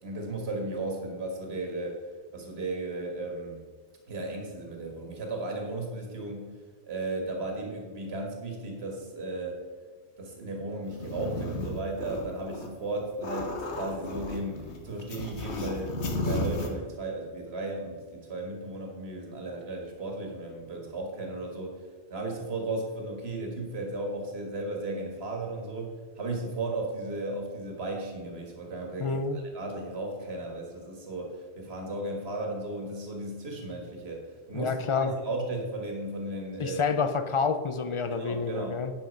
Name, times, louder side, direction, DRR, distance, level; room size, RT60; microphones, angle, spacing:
voice 1, 0.0-2.0 2.3-3.6 4.1-6.5 6.8-9.6 10.2-21.8 22.1-36.8 38.1-38.8, right 2 dB, 60° right, 1 dB, 1.9 m, -35 dB
sound 1, 10.8-12.7 13.0-16.7, left 2 dB, 70° left, 1.5 m, -34 dB
voice 2, 29.0-29.4 34.5-35.1 36.6-38.9, left 5 dB, 40° left, 10 dB, 0.4 m, -28 dB
10.0 x 5.9 x 5.2 m, 1.5 s
omnidirectional pair, 1.2 m